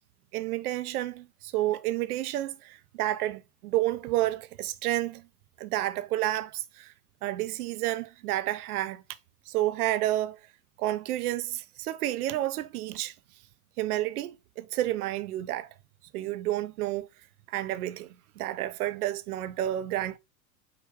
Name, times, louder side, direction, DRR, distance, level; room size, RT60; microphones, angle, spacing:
voice 1, 0.3-5.2 5.6-6.9 7.2-9.0 9.5-10.4 10.8-13.1 13.8-15.7 16.1-17.1 17.5-20.2, right 14 dB, 70° right, 0.7 m, -30 dB
4.8 x 2.3 x 4.6 m
hypercardioid pair, 90°, 48 cm